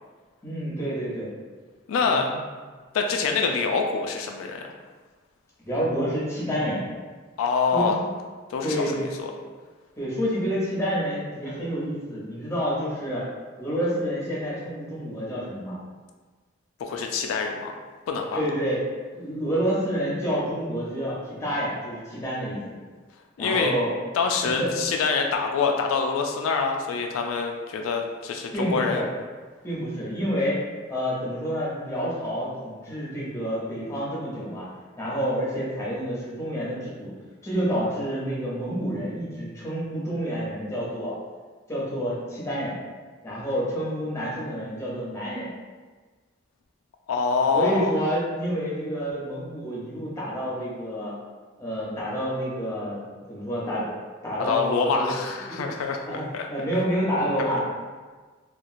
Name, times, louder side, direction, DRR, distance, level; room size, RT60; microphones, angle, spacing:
voice 1, 0.4-1.3 2.0-2.4 5.6-6.8 7.7-8.1 8.6-9.0 10.0-13.3 13.6-15.8 18.3-18.8 19.1-22.6 23.4-23.9 24.4-24.7 28.5-29.1 29.6-30.6 30.9-34.6 35.0-37.1 37.4-41.1 41.7-42.8 43.2-45.5 47.5-51.1 51.6-53.9 54.2-55.1 55.4-55.7 56.1-56.2 56.5-57.7, equal, 15° left, -7 dB, 0.7 m, -28 dB
voice 2, 1.9-2.3 2.9-4.7 7.4-8.0 8.5-9.3 16.8-17.8 18.1-18.4 23.4-23.7 24.1-29.0 47.1-47.9 54.4-56.0 56.3-56.5, left 5 dB, 90° left, 3 dB, 0.3 m, -25 dB
2.9 x 2.3 x 2.5 m, 1.4 s
head